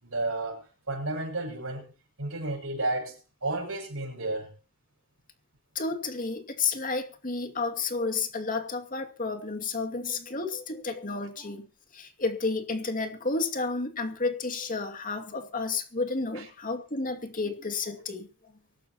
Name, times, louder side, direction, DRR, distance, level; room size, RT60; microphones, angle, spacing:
voice 1, 0.0-1.9 2.2-3.1 3.4-4.5 16.3-16.4, right 2 dB, 85° right, 6.4 m, -32 dB
voice 2, 5.7-11.7 11.9-18.3, left 3 dB, 40° left, 2.4 m, -31 dB
23.5 x 13.0 x 3.0 m
head